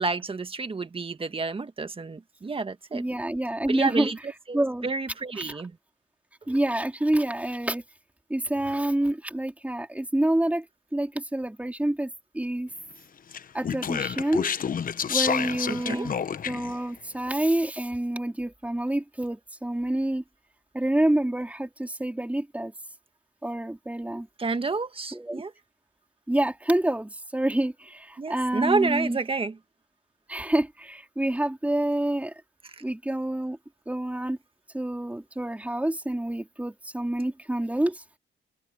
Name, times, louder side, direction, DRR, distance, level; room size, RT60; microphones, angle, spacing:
voice 1, 0.0-3.0 3.7-5.7 15.7-16.1 24.4-25.5 28.2-29.6, right 4 dB, 25° right, 1.7 m, -29 dB
voice 2, 2.9-4.1 4.5-4.9 5.4-5.6 6.5-7.8 8.3-10.6 10.9-12.1 12.3-12.7 13.5-14.5 15.1-16.1 16.5-20.2 20.7-22.7 23.4-24.3 25.1-25.4 26.3-29.2 30.3-32.3 32.8-33.6 33.9-34.4 34.7-38.0, right 1 dB, 5° right, 3.9 m, -27 dB
Speech, 13.3-16.8, left 7 dB, 45° left, 1.1 m, -29 dB
cardioid pair, 90°, 20 cm